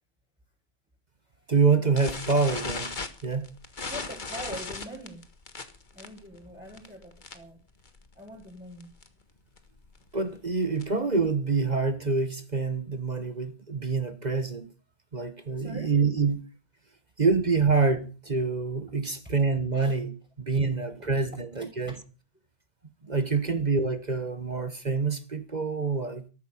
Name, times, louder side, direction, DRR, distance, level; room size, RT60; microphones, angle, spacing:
voice 1, 1.5-3.0 3.2-3.5 10.1-14.7 15.1-16.5 17.2-21.9 23.0-26.2, right 4 dB, 40° right, 1.3 m, -26 dB
sound 1, 2.0-7.6 7.9-8.1 8.4-8.5 8.8-9.1 9.6-11.1, left 3 dB, 40° left, 1.6 m, -37 dB
voice 2, 3.9-5.2 5.9-7.6 8.1-8.9 15.6-15.9 19.2-19.3 19.7-19.9 21.5-21.7, equal, 10° right, 4.5 m, -43 dB
13.5 x 13.5 x 5.5 m
omnidirectional pair, 1.2 m